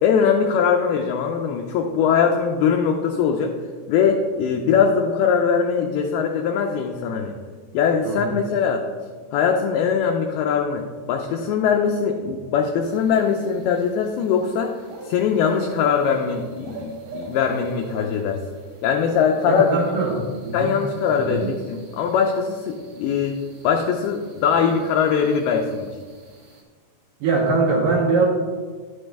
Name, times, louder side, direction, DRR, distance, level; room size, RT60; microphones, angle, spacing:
voice 1, 0.0-3.5 3.9-7.3 7.7-8.8 9.3-14.8 15.1-18.4 18.8-19.7 20.5-23.4 23.6-25.9, left 6 dB, 80° left, 2 dB, 2.3 m, -21 dB
sound 1, 12.8-26.6, right 3 dB, 65° right, 2.6 m, -43 dB
voice 2, 19.6-20.7 21.2-21.5 27.2-28.3, right 3 dB, 80° right, 0 dB, 1.9 m, -22 dB
10.5 x 6.2 x 3.3 m, 1.5 s
omnidirectional pair, 4.9 m